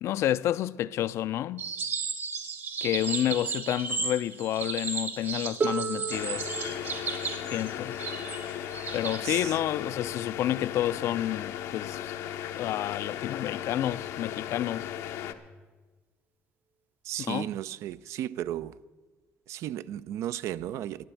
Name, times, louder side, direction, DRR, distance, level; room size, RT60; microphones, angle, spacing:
voice 1, 0.0-1.6 2.8-6.5 7.5-8.0 8.9-12.1 12.6-14.9 17.2-17.5, left 12 dB, 70° left, 0.4 m, -29 dB
sound 1, 1.6-9.2, right 5 dB, 50° right, 1.6 m, -34 dB
Harp, 5.6-11.4 12.4-12.5, right 5 dB, 35° right, 0.6 m, -38 dB
sound 2, 6.1-15.3, left 11 dB, 90° left, 0.8 m, -36 dB
voice 2, 17.0-18.8 19.5-21.1, right 12 dB, 75° right, 0.4 m, -34 dB
12.0 x 8.8 x 8.4 m
cardioid pair, 100°, 5 cm